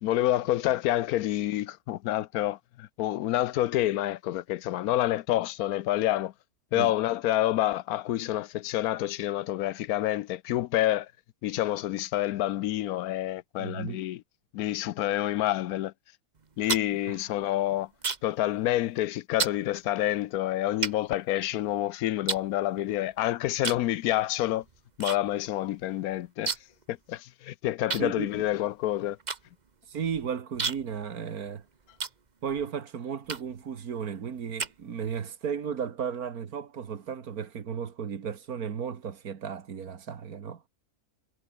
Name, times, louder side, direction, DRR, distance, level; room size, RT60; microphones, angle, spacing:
voice 1, 0.0-6.3 6.7-11.1 11.4-14.2 14.5-15.9 16.6-17.9 18.2-24.6 25.0-26.5 26.9-29.2, left 14 dB, 75° left, 1.1 m, -28 dB
voice 2, 13.6-14.0 17.1-17.2 28.0-28.3 29.9-31.6 32.4-40.7, right 7 dB, 75° right, 1.9 m, -34 dB
sound 1, 16.4-18.4 18.7-19.0 19.4-19.6 20.2-20.3 20.8-21.8 22.3-23.1 23.6-23.9 24.2-25.2 25.5-25.6 25.8-26.8 27.1-27.2 27.9-32.7 33.2-33.7 34.2-35.2, right 4 dB, 30° right, 1.2 m, -34 dB
omnidirectional pair, 1.6 m